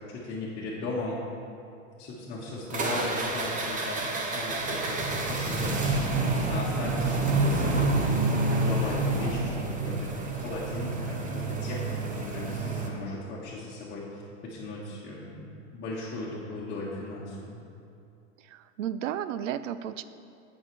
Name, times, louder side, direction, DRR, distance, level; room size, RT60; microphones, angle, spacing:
voice 1, 0.1-1.2 2.0-4.0 4.3-5.0 5.3-5.8 6.3-17.6, left 2 dB, 30° left, -8 dB, 1.5 m, -37 dB
sound 1, 2.7-12.9, right 2 dB, 20° right, 1.0 m, -28 dB
voice 2, 18.4-20.0, right 10 dB, 80° right, 14 dB, 0.6 m, -33 dB
14.5 x 5.8 x 3.4 m, 2.6 s
hypercardioid pair, 120°, 38 cm